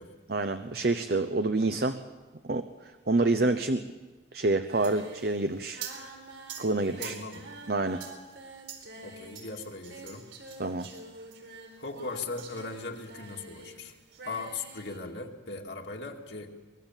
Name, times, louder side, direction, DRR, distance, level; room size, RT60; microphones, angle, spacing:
voice 1, 0.3-2.0 2.4-3.8 4.3-5.8 6.6-7.1 7.7-8.0 10.6-10.9, right 2 dB, 55° right, 8 dB, 0.8 m, -27 dB
Singing, 4.7-13.8 14.1-15.0, right 4 dB, 85° right, 4.2 m, -45 dB
voice 2, 7.0-7.4 9.0-10.3 11.8-14.0 14.2-16.5, left 3 dB, 70° left, 1 dB, 2.3 m, -38 dB
24.0 x 20.5 x 7.3 m, 1.3 s
head